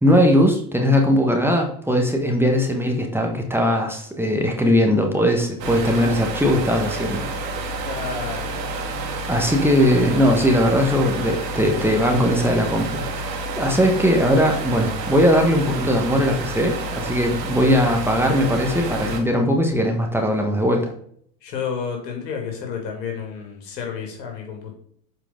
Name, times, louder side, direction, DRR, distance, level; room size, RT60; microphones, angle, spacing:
voice 1, 0.0-7.3 7.6-7.9 9.3-13.3 13.6-20.9, equal, 5° right, 1 dB, 1.4 m, -19 dB
sound 1, 5.6-19.2, right 2 dB, 80° right, 1.7 m, -29 dB
voice 2, 7.8-8.6 21.4-24.7, left 6 dB, 80° left, 1 dB, 2.7 m, -30 dB
7.5 x 4.8 x 3.8 m, 0.63 s
hypercardioid pair, 90°, 49 cm